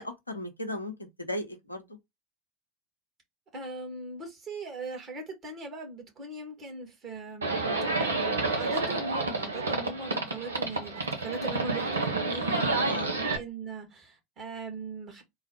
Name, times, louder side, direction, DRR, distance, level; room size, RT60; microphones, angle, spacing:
voice 1, 0.0-1.9 12.8-13.2, left 1 dB, 90° left, 0.7 m, -36 dB
voice 2, 3.5-15.2, right 3 dB, 35° right, 2.0 m, -40 dB
Livestock farm animals working animals, 7.4-13.4, right 3 dB, 80° right, 0.9 m, -29 dB
3.8 x 2.4 x 4.4 m
figure-of-eight pair, 75°, 0 cm